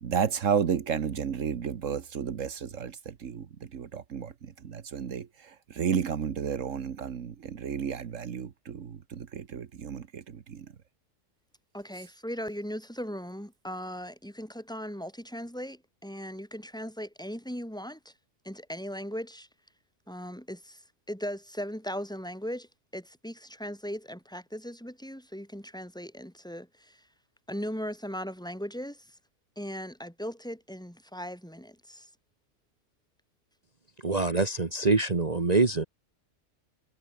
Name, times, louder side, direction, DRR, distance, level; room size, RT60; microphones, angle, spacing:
voice 1, 0.0-3.5 3.7-4.3 4.6-5.3 5.8-10.2 10.5-10.6, right 7 dB, 80° right, 1.6 m, -32 dB
voice 2, 11.7-18.1 18.4-19.5 20.1-20.8 21.1-27.0 27.5-29.1 29.6-32.1, equal, 5° left, 6.1 m, -38 dB
voice 3, 34.0-35.8, right 3 dB, 30° right, 1.6 m, -25 dB
omnidirectional pair, 1.3 m